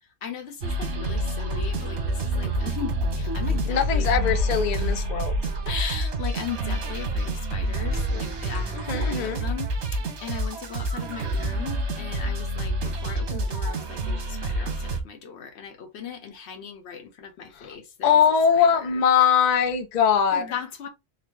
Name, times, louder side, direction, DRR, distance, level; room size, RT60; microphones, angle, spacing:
voice 1, 0.0-4.1 4.7-5.1 5.6-18.2 18.5-19.0 20.3-20.9, left 7 dB, 75° left, 1.0 m, -38 dB
sound 1, 0.6-15.0, right 1 dB, 90° right, 1.2 m, -28 dB
sound 2, 3.1-13.5, left 1 dB, 10° right, 0.7 m, -44 dB
voice 2, 3.7-5.3 8.9-9.4 17.6-17.7 18.0-20.5, left 7 dB, 50° left, 0.6 m, -21 dB
3.9 x 2.1 x 3.1 m
omnidirectional pair, 1.1 m